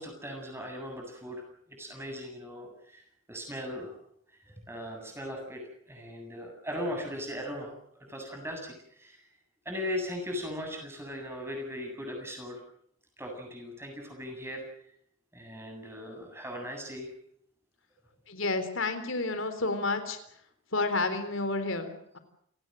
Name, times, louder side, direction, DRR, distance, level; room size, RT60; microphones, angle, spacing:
voice 1, 0.0-4.0 4.5-5.6 5.9-7.7 8.1-9.3 9.6-12.6 13.2-14.6 15.3-17.1, left 1 dB, 10° right, 3 dB, 7.8 m, -38 dB
voice 2, 18.3-20.2 20.7-22.2, left 3 dB, 70° left, 9 dB, 3.7 m, -30 dB
29.5 x 19.0 x 7.8 m, 0.71 s
head